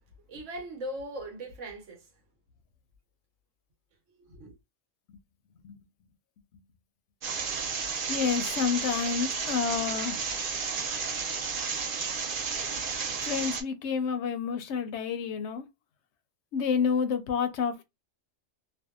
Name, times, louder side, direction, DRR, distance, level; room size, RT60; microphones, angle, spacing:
voice 1, 0.3-2.1 4.2-4.5, right 1 dB, 80° right, 1.2 m, -39 dB
sound 1, 7.2-13.6, right 5 dB, 55° right, 0.7 m, -32 dB
voice 2, 8.1-10.2 13.2-15.6 16.5-17.8, left 6 dB, 70° left, 0.8 m, -29 dB
2.6 x 2.2 x 2.3 m
omnidirectional pair, 1.3 m